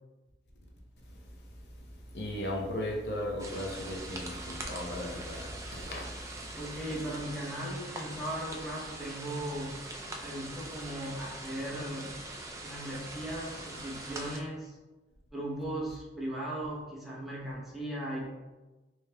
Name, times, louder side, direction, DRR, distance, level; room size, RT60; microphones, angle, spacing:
voice 1, 2.1-6.0, left 1 dB, 65° left, -1 dB, 0.6 m, -36 dB
sound 1, 3.4-14.4, right 2 dB, 20° right, 0.3 m, -43 dB
voice 2, 6.5-9.8 10.2-12.1 12.6-14.8 15.3-18.2, right 1 dB, ahead, -6 dB, 0.8 m, -37 dB
4.7 x 3.1 x 2.2 m, 1.2 s
head